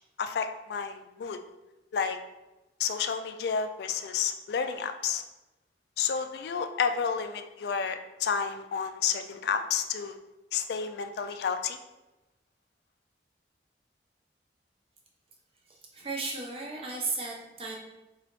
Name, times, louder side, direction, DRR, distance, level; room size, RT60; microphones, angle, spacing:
voice 1, 0.2-1.4 1.9-2.2 2.8-5.2 6.0-10.2 10.5-11.8, left 6 dB, 65° left, 8 dB, 0.3 m, -30 dB
voice 2, 15.7-17.8, right 3 dB, 30° right, -1 dB, 0.6 m, -35 dB
3.7 x 3.1 x 3.0 m, 1.0 s
head